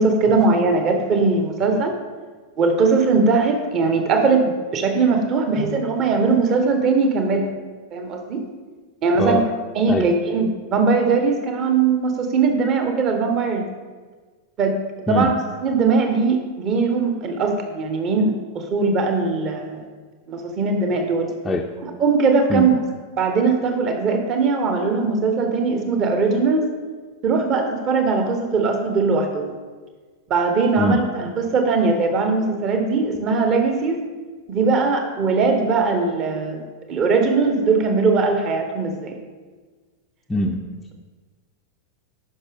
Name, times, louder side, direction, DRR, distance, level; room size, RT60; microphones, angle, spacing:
voice 1, 0.0-1.9 2.6-7.5 7.9-8.4 9.0-9.4 9.7-13.7 14.6-14.8 15.1-15.3 15.6-19.8 20.3-21.3 21.8-22.8 23.2-26.7 27.2-29.5 30.3-34.0 34.5-36.6 36.9-39.2, right 4 dB, 35° right, 5 dB, 1.1 m, -20 dB
voice 2, 9.1-9.5 9.9-10.1 15.1-15.3 21.4-21.7 22.5-22.7 30.8-31.0 40.3-40.6, left 1 dB, 10° left, 0 dB, 0.5 m, -22 dB
10.0 x 5.9 x 3.5 m, 1.4 s
figure-of-eight pair, 90°, 0 cm